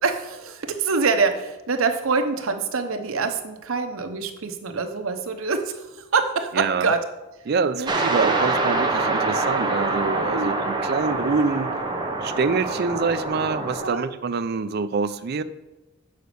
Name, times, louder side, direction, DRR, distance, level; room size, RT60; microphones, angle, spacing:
voice 1, 0.0-5.9 6.1-7.0 7.7-7.9 10.3-10.6 13.8-14.0, right 4 dB, 75° right, 6 dB, 0.8 m, -25 dB
voice 2, 6.5-6.9 7.5-11.7 12.2-15.4, right 4 dB, 50° right, 12 dB, 0.4 m, -25 dB
sound 1, 7.9-13.9, right 3 dB, 20° right, 0.9 m, -25 dB
6.6 x 5.1 x 6.7 m, 1.0 s
head